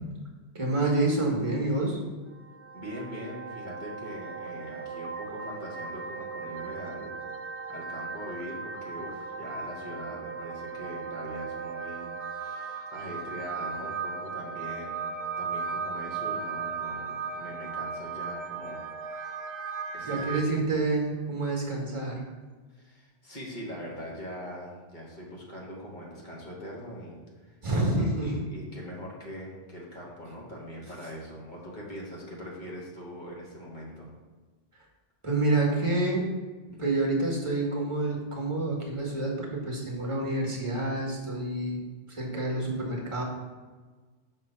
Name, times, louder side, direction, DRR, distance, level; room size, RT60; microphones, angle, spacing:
voice 1, 0.5-2.0 20.0-22.2 27.6-28.4 35.2-36.3 36.8-43.2, right 2 dB, 25° right, -1 dB, 1.1 m, -28 dB
sound 1, 2.3-20.5, right 5 dB, 55° right, 0.8 m, -37 dB
voice 2, 2.7-7.3 7.7-18.8 19.1-19.4 19.9-20.6 22.7-27.6 28.0-34.1, equal, 40° left, -4 dB, 1.4 m, -42 dB
5.9 x 3.1 x 5.4 m, 1.4 s
omnidirectional pair, 1.2 m